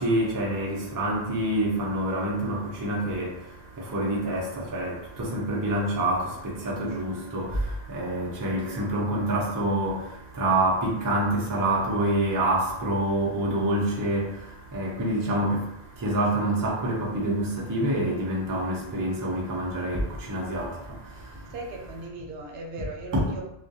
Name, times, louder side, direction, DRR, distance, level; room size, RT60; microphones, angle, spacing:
voice 1, 0.0-21.5 23.1-23.2, right 1 dB, 30° right, 0.4 m, -27 dB
voice 2, 21.5-23.4, right 2 dB, 75° right, 0.8 m, -38 dB
2.3 x 2.2 x 2.7 m
omnidirectional pair, 1.1 m